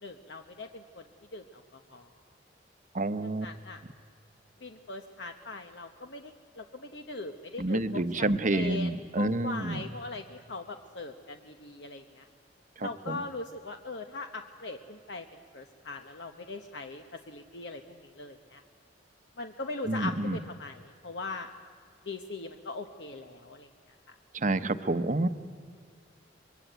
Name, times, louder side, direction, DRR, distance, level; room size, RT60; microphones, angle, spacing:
voice 1, 0.0-1.0 1.3-2.1 3.2-3.8 4.6-12.3 12.8-15.3 15.5-18.6 19.4-21.5 22.0-23.7, left 3 dB, 70° left, 6 dB, 1.1 m, -40 dB
voice 2, 2.9-3.5 7.6-9.8 12.8-13.2 19.9-20.4 24.3-25.3, right 2 dB, 45° right, 11 dB, 0.9 m, -28 dB
24.5 x 22.0 x 9.2 m, 2.1 s
head